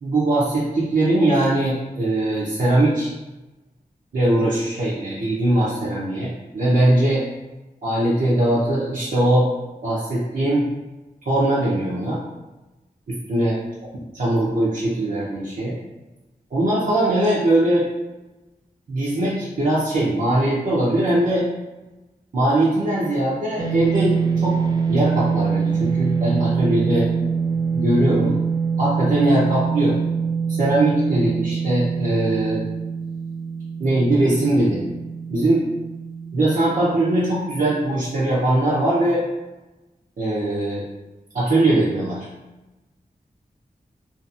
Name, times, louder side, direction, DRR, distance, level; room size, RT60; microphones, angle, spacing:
voice 1, 0.0-3.1 4.1-7.2 7.8-9.5 9.8-10.6 11.2-12.2 13.1-13.6 14.1-15.8 16.5-17.9 18.9-21.4 22.3-27.1 27.7-28.4 28.8-30.0 30.5-32.6 33.8-34.8 35.3-35.7 36.3-39.2 40.2-40.8 41.3-42.3, right 1 dB, 70° right, -9 dB, 0.6 m, -20 dB
sound 1, 23.6-38.0, right 6 dB, 25° right, 0.4 m, -24 dB
2.7 x 2.5 x 2.5 m, 1.1 s
wide cardioid pair, 80°, 15 cm